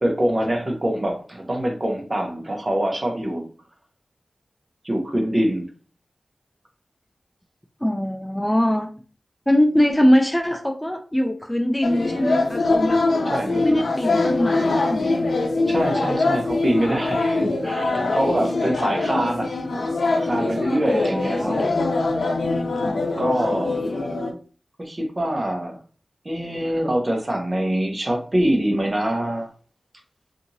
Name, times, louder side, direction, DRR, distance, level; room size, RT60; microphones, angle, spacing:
voice 1, 0.0-3.5 4.8-5.7 13.3-13.6 15.7-21.6 23.2-23.8 24.8-25.8 26.2-29.5, right 1 dB, 35° right, 0.7 m, -24 dB
voice 2, 7.8-8.9 9.5-13.0 13.6-15.2 20.9-21.8 22.8-24.0, equal, 5° left, 0.3 m, -23 dB
sound 1, 11.8-24.3, left 3 dB, 85° left, 0.5 m, -23 dB
2.8 x 2.5 x 2.6 m
wide cardioid pair, 80°, 0 cm